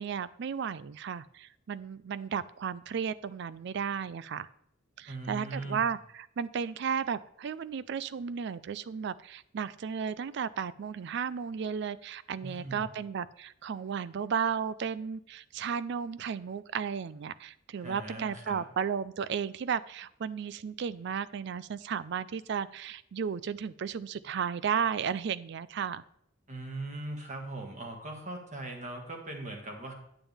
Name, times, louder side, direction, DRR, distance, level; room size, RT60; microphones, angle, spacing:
voice 1, 0.0-4.5 5.0-26.0, right 7 dB, 55° right, 17 dB, 0.4 m, -34 dB
voice 2, 5.1-5.9 12.4-12.9 17.8-18.6 26.5-29.9, right 2 dB, 35° right, 2 dB, 1.7 m, -40 dB
9.0 x 8.8 x 3.5 m, 0.72 s
head